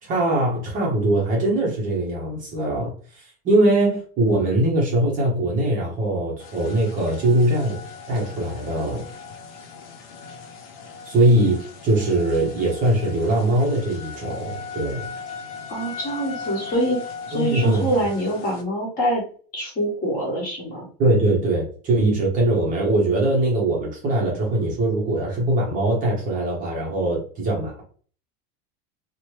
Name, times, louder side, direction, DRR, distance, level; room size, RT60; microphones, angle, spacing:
voice 1, 0.0-7.8 8.1-9.0 11.1-15.1 17.3-17.8 21.0-27.8, right 1 dB, 25° right, -2 dB, 0.7 m, -21 dB
sound 1, 6.4-18.6, left 5 dB, 70° left, 0.7 m, -38 dB
voice 2, 15.7-19.2 19.5-20.8, right 1 dB, 25° left, -3 dB, 1.4 m, -25 dB
2.9 x 2.1 x 3.0 m, 0.43 s
supercardioid pair, 165°, 31 cm